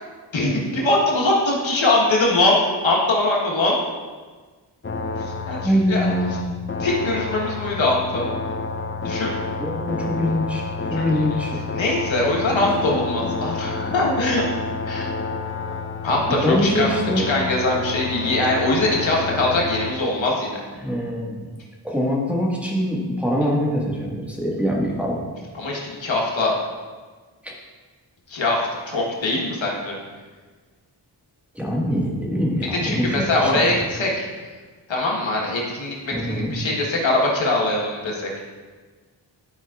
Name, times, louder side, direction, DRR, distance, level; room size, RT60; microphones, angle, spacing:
voice 1, 0.3-3.8 5.2-6.1 6.8-8.3 9.0-9.3 11.0-11.1 11.7-14.4 14.9-15.1 16.0-16.9 17.3-20.6 25.5-26.5 28.3-30.0 32.8-34.3 34.9-38.3, left 2 dB, 85° left, -2 dB, 1.4 m, -22 dB
sound 1, 4.8-19.9, left 3 dB, 25° left, 0.6 m, -29 dB
voice 2, 5.6-6.4 9.6-11.6 16.3-17.3 20.8-21.5 21.8-25.2 27.4-27.6 31.5-33.7 36.1-36.5, equal, 5° right, -4 dB, 1.6 m, -23 dB
11.0 x 5.3 x 2.4 m, 1.4 s
cardioid pair, 55°, 44 cm